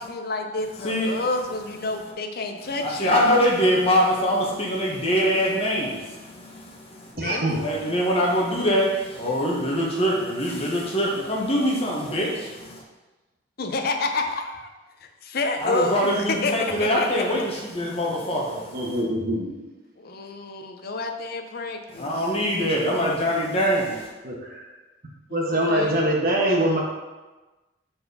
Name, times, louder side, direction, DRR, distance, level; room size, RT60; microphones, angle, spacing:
voice 1, 0.0-3.3 7.1-7.8 13.6-14.7 15.0-17.2 20.0-22.2 25.3-26.0, left 3 dB, 55° left, 5 dB, 0.6 m, -29 dB
voice 2, 0.8-1.2 2.8-7.1 7.6-12.8 15.6-19.0 21.9-24.1, equal, 35° left, -3 dB, 1.3 m, -24 dB
voice 3, 7.2-7.6 18.7-19.5 24.2-24.7 25.3-26.8, right 1 dB, 55° right, -2 dB, 1.3 m, -23 dB
4.5 x 4.3 x 5.4 m, 1.2 s
head